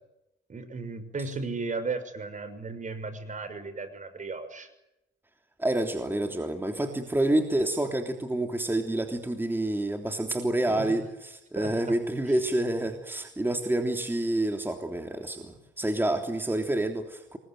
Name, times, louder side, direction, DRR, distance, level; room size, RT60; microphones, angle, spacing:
voice 1, 0.5-4.7 10.7-11.0 11.5-12.0, right 3 dB, 40° right, 11 dB, 6.3 m, -35 dB
voice 2, 5.6-17.4, right 1 dB, 10° right, 5 dB, 3.4 m, -28 dB
27.5 x 22.0 x 9.3 m, 0.88 s
cardioid pair, 90°, 20 cm